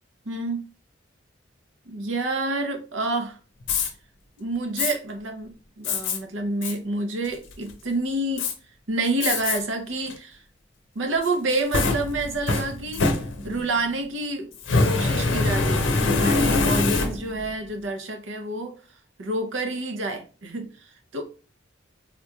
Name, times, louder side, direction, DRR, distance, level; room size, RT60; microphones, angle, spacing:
voice 1, 0.3-0.6 1.9-3.4 4.4-8.5 8.9-10.4 10.9-13.1 13.4-14.5 14.8-18.7 19.2-21.2, right 2 dB, 80° right, 0.7 m, -28 dB
Fire, 3.6-3.9 4.8-4.9 5.8-6.2 6.6-6.7 7.3-7.7 8.4-8.5 9.2-9.6 10.1-10.2 11.2-13.7 14.6-17.4, left 3 dB, 85° left, 0.6 m, -24 dB
3.7 x 2.9 x 2.3 m
head